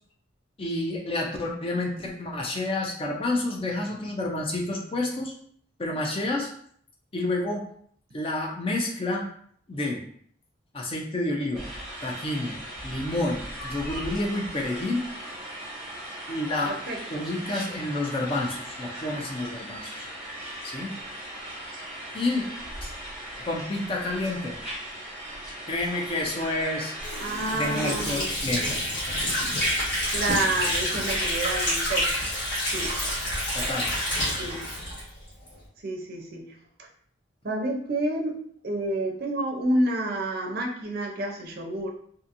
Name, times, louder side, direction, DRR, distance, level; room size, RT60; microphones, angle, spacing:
voice 1, 0.6-5.3 5.8-6.5 7.1-7.7 8.1-9.3 9.7-10.0 10.7-11.6 12.0-12.6 12.8-15.0 16.3-16.7 17.1-20.1 20.6-20.9 22.1-22.5 22.8-22.9 23.5-24.6 25.7-26.9 27.5-28.8 33.5-33.9, left 2 dB, 30° left, 0 dB, 0.4 m, -29 dB
sound 1, 11.5-28.1, right 1 dB, 5° right, 0.9 m, -38 dB
voice 2, 16.7-17.3 25.0-25.3 27.2-28.3 30.1-32.1 32.7-32.9 34.4-34.6 35.8-36.4 36.8-36.9 37.4-38.3 38.6-41.9, right 1 dB, 50° right, 1 dB, 0.5 m, -29 dB
Water / Sink (filling or washing), 27.0-35.6, equal, 55° left, 1.2 m, -28 dB
2.7 x 2.5 x 2.5 m, 0.62 s
head